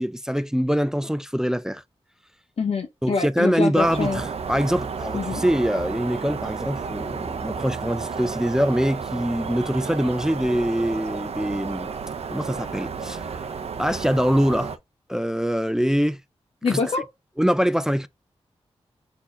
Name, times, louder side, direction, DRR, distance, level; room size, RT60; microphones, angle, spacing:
voice 1, 0.0-1.8 3.0-11.9 12.3-13.2 13.8-14.7 15.1-16.2 16.7-16.8 17.4-18.1, equal, 5° right, 0.3 m, -24 dB
voice 2, 2.6-4.2 5.1-5.4 16.6-17.0, left 4 dB, 65° left, 0.7 m, -25 dB
sound 1, 3.7-14.8, right 5 dB, 70° right, 0.5 m, -32 dB
4.2 x 2.8 x 4.2 m
cardioid pair, 60°, 11 cm